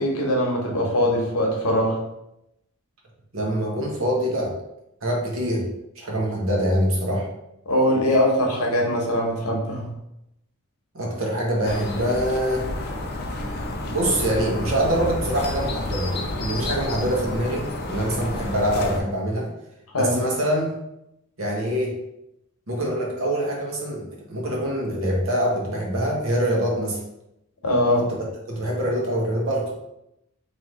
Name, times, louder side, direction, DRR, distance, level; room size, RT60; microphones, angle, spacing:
voice 1, 0.0-2.0 7.7-9.9 19.9-20.2 27.6-28.1, left 1 dB, 85° left, 0 dB, 1.0 m, -21 dB
voice 2, 3.3-4.5 5.0-5.7 6.0-7.3 10.9-12.6 13.9-19.5 20.0-20.8 21.4-22.0 22.7-27.0 28.0-29.7, equal, 65° right, -1 dB, 1.1 m, -24 dB
sound 1, 11.6-19.0, left 1 dB, 45° left, 0.5 m, -30 dB
3.1 x 2.7 x 4.2 m, 0.83 s
head